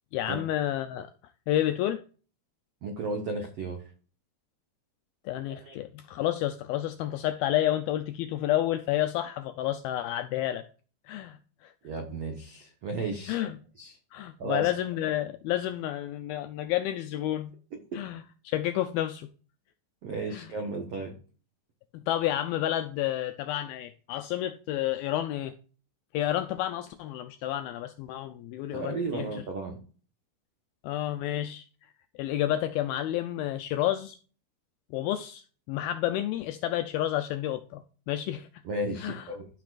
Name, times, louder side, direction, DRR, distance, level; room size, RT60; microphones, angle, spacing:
voice 1, 0.1-1.1 1.5-2.0 5.3-10.6 11.1-11.7 13.3-13.6 14.1-17.5 17.9-19.3 20.3-20.5 22.1-25.5 26.1-29.4 30.8-31.9 32.2-34.2 34.9-38.5 39.0-39.3, left 13 dB, 85° left, 2.1 m, -30 dB
voice 2, 2.8-3.8 5.5-5.8 11.8-13.4 13.8-14.0 14.4-14.7 20.0-21.1 28.7-29.8 38.6-39.5, right 2 dB, 85° right, 1.3 m, -34 dB
13.5 x 6.0 x 2.5 m
omnidirectional pair, 4.8 m